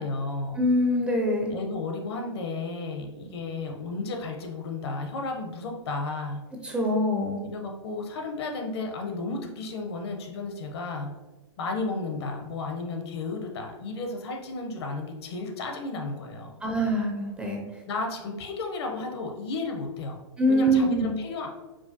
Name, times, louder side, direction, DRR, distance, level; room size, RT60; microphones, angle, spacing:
voice 1, 0.0-0.6 1.5-6.4 7.4-11.1 11.6-16.6 17.9-20.2 20.5-21.5, left 3 dB, 60° left, 3 dB, 0.7 m, -33 dB
voice 2, 0.6-1.5 6.6-7.5 16.6-17.6 20.4-21.2, equal, 5° right, -1 dB, 0.4 m, -24 dB
4.7 x 2.2 x 2.7 m, 1.1 s
hypercardioid pair, 130°, 15 cm